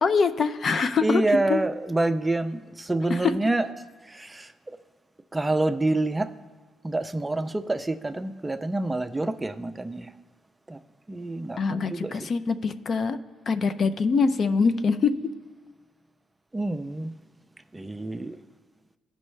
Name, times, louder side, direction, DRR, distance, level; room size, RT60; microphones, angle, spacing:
voice 1, 0.0-1.6 3.1-3.3 11.6-13.2 13.5-15.3, left 5 dB, 50° left, 0.4 m, -24 dB
voice 2, 1.0-3.7 4.1-4.5 5.3-6.3 6.8-10.1 10.7-10.8 11.1-12.3 16.5-17.1 17.7-18.4, right 2 dB, 15° right, 0.4 m, -27 dB
16.0 x 5.3 x 3.2 m
cardioid pair, 90°, 0 cm